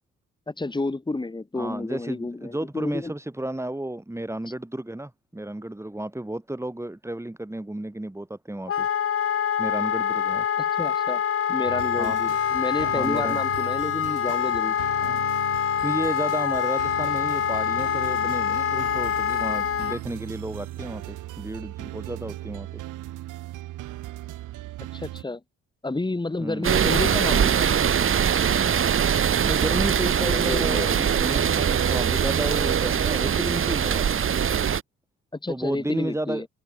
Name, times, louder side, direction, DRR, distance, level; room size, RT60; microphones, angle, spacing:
voice 1, 0.5-3.1 10.6-11.2 11.5-14.8 24.9-25.4 25.8-27.7 28.5-28.7 30.2-31.0 35.4-36.5, left 2 dB, 15° left, 2.6 m, -30 dB
voice 2, 1.5-8.9 9.6-10.5 12.0-12.2 12.8-13.4 15.0-15.2 15.8-22.8 26.4-26.7 29.2-34.2 35.5-36.4, right 1 dB, 10° right, 6.9 m, -32 dB
Wind instrument woodwind instrument, 8.7-20.0, left 9 dB, 45° left, 1.1 m, -25 dB
sound 1, 11.6-25.2, right 16 dB, 90° right, 3.5 m, -38 dB
sound 2, 26.6-34.8, right 8 dB, 45° right, 1.3 m, -22 dB
cardioid pair, 90°, 30 cm